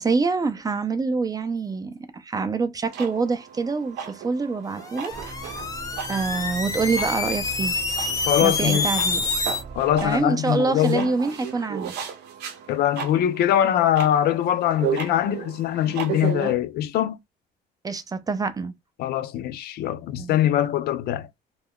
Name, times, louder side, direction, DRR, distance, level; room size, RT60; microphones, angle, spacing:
voice 1, 0.0-5.1 5.4-5.6 6.1-7.7 8.4-9.2 10.0-11.9 17.8-18.7 20.2-20.4, right 4 dB, 20° right, 0.4 m, -26 dB
sound 1, 2.9-16.5, right 8 dB, 80° right, 0.7 m, -35 dB
sound 2, 4.8-9.6, left 3 dB, 20° left, 0.6 m, -27 dB
sound 3, 5.1-10.2, right 3 dB, 35° right, 0.8 m, -40 dB
voice 2, 8.3-8.9 9.7-11.1 12.7-17.2 19.0-21.3, left 11 dB, 70° left, 0.5 m, -22 dB
2.3 x 2.2 x 3.6 m
cardioid pair, 110°, 17 cm